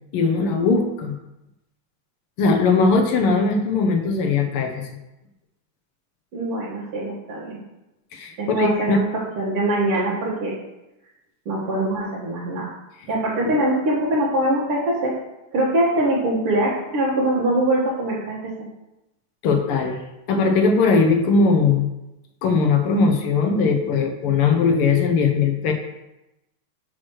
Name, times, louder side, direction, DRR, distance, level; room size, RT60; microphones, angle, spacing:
voice 1, 0.1-1.1 2.4-5.0 8.1-9.0 19.4-20.0 20.3-21.9 22.4-25.7, left 4 dB, 90° left, 4 dB, 1.8 m, -19 dB
voice 2, 6.3-7.6 8.4-9.0 9.4-10.6 11.5-12.7 13.1-15.1 15.5-18.4, right 1 dB, 85° right, -8 dB, 2.4 m, -23 dB
6.1 x 4.6 x 6.2 m, 0.95 s
omnidirectional pair, 2.4 m